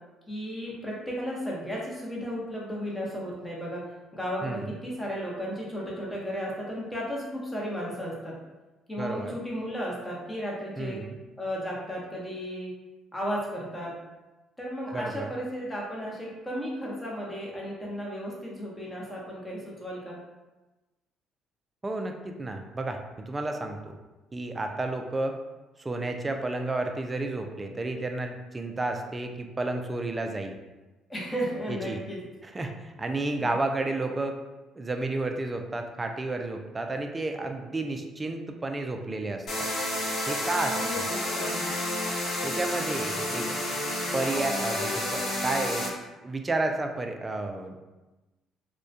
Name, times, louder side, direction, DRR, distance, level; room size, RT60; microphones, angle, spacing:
voice 1, 0.3-3.8 4.1-8.4 8.9-11.0 11.4-12.7 13.1-14.0 14.6-20.2 31.1-32.2 33.4-33.5 40.8-41.6, equal, 15° left, -4 dB, 0.8 m, -34 dB
voice 2, 4.4-4.8 9.0-9.4 10.8-11.2 14.9-15.3 21.8-24.0 24.3-25.4 25.8-30.6 31.7-32.0 32.4-34.4 34.7-39.7 40.3-41.1 42.4-43.5 44.1-45.9 46.2-47.8, right 2 dB, 25° right, 4 dB, 0.3 m, -31 dB
sound 1, 39.5-45.9, left 1 dB, 60° left, 1.0 m, -30 dB
2.2 x 2.1 x 2.6 m, 1.1 s
supercardioid pair, 75°, 0 cm